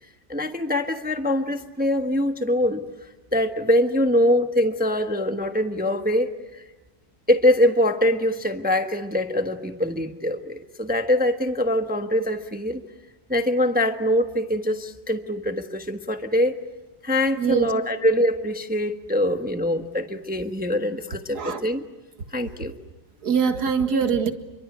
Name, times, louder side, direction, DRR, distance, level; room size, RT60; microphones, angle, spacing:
voice 1, 0.3-2.8 3.3-6.6 7.3-12.8 13.3-16.5 17.0-21.8 22.3-22.7, left 1 dB, 5° right, 6 dB, 1.0 m, -23 dB
voice 2, 17.4-17.7 21.3-21.6 23.2-24.3, right 6 dB, 60° right, 7 dB, 2.2 m, -23 dB
29.0 x 23.5 x 8.1 m, 1.1 s
omnidirectional pair, 1.9 m